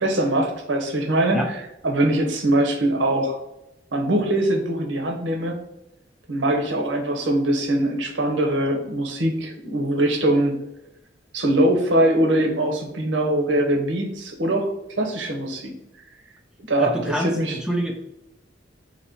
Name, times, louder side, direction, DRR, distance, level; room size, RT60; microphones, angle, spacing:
voice 1, 0.0-3.3 3.9-5.6 6.3-10.5 11.3-14.7 15.0-15.7 16.7-17.6, right 1 dB, 90° right, 2 dB, 0.9 m, -22 dB
voice 2, 16.8-17.9, equal, 5° right, 2 dB, 0.4 m, -26 dB
4.2 x 2.9 x 4.4 m, 0.91 s
head